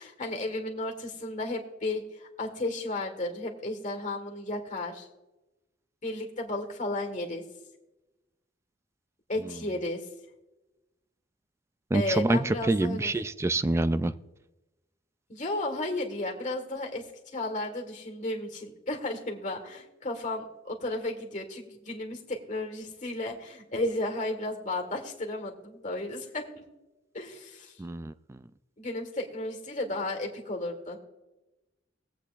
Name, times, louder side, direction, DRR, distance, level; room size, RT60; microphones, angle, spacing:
voice 1, 0.0-5.1 6.0-7.4 9.3-10.0 11.9-13.1 15.3-17.1 17.3-26.6 27.1-27.8 28.8-31.0, left 2 dB, 45° left, 2 dB, 1.7 m, -33 dB
voice 2, 11.9-14.1 27.8-28.4, right 2 dB, 15° right, 13 dB, 0.3 m, -26 dB
20.5 x 8.3 x 2.5 m, 1.0 s
head